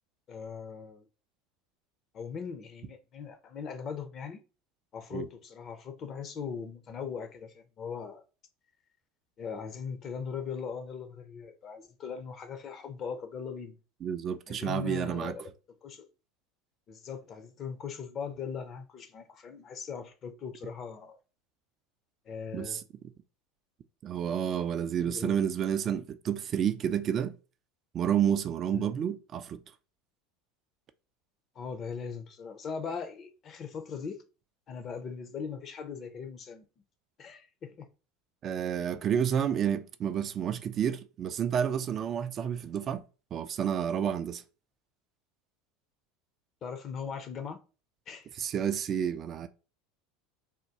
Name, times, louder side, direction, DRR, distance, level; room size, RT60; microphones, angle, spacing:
voice 1, 0.3-1.1 2.1-4.4 4.9-8.2 9.4-13.8 14.5-15.4 15.8-16.1 16.9-21.2 22.3-22.8 25.0-25.4 28.7-28.9 31.6-34.2 34.7-36.6 37.2-37.9 46.6-47.6 48.1-48.3, left 6 dB, 40° left, 0.6 m, -39 dB
voice 2, 14.0-15.3 22.5-22.8 24.0-27.3 27.9-29.6 38.4-43.0 43.3-44.4 48.4-49.5, right 8 dB, 40° right, 0.3 m, -30 dB
3.5 x 2.2 x 2.8 m
hypercardioid pair, 75°, 0 cm